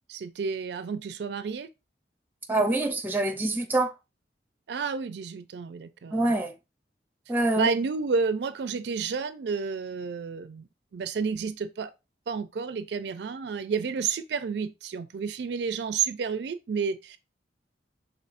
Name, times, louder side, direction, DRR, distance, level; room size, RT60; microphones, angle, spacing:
voice 1, 0.1-1.7 4.7-6.3 7.6-10.7 10.9-11.9 12.3-17.2, right 5 dB, 70° right, 0.4 m, -30 dB
voice 2, 2.5-3.9 6.1-6.5 7.3-7.7, right 2 dB, 10° right, 0.6 m, -25 dB
5.5 x 3.7 x 2.5 m
head